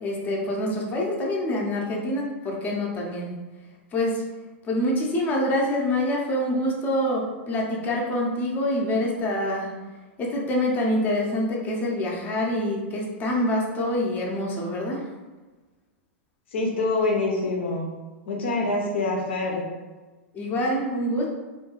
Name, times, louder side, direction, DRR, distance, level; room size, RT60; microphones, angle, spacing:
voice 1, 0.0-3.3 3.9-4.2 4.7-9.7 10.2-15.0 20.3-21.2, left 1 dB, 25° left, -2 dB, 0.6 m, -26 dB
voice 2, 16.5-17.9 18.3-19.7, left 2 dB, 65° left, -1 dB, 0.6 m, -25 dB
2.6 x 2.3 x 3.0 m, 1.3 s
figure-of-eight pair, 100°, 6 cm